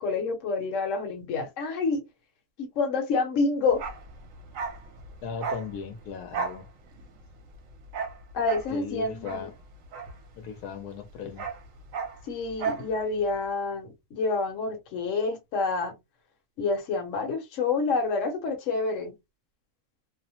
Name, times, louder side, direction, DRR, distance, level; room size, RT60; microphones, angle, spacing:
voice 1, 0.0-2.0 2.6-3.8 8.3-9.5 12.3-15.9 16.6-19.1, left 3 dB, 60° left, 1.1 m, -28 dB
Bark, 3.7-10.7 11.0-12.9 13.2-13.3, right 5 dB, 65° right, 1.0 m, -35 dB
voice 2, 5.2-6.7 8.7-9.5 10.4-11.5, left 6 dB, 85° left, 1.2 m, -37 dB
2.7 x 2.0 x 2.8 m
omnidirectional pair, 1.6 m